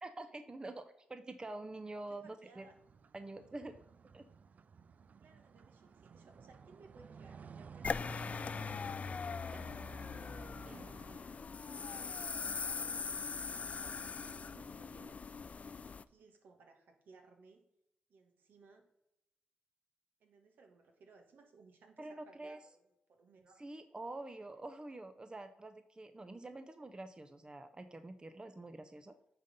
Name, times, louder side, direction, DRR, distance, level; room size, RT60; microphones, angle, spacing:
voice 1, 0.0-2.6 3.1-3.7 4.1-4.2 22.0-22.6 23.6-29.1, right 2 dB, 25° right, 9 dB, 0.7 m, -47 dB
voice 2, 1.9-2.7 5.2-12.2 12.8-15.2 15.6-17.6 18.1-18.8 20.2-22.8 23.1-23.7, right 4 dB, 70° right, 4 dB, 1.6 m, -62 dB
sound 1, 2.6-11.2, right 6 dB, 50° right, 0.3 m, -55 dB
sound 2, 7.8-16.0, left 5 dB, 45° left, 0.4 m, -41 dB
9.4 x 3.9 x 5.3 m, 0.84 s
supercardioid pair, 50°, 3 cm